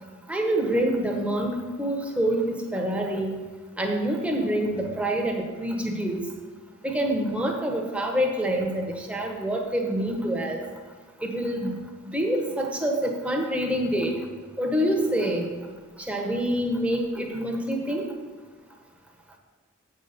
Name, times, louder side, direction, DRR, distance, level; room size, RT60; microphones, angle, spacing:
voice 1, 0.3-3.4 3.8-6.2 6.8-10.6 11.2-11.8 12.0-14.1 14.6-15.5 16.1-18.1, right 1 dB, 5° right, 1 dB, 1.0 m, -26 dB
7.4 x 5.6 x 6.7 m, 1.4 s
head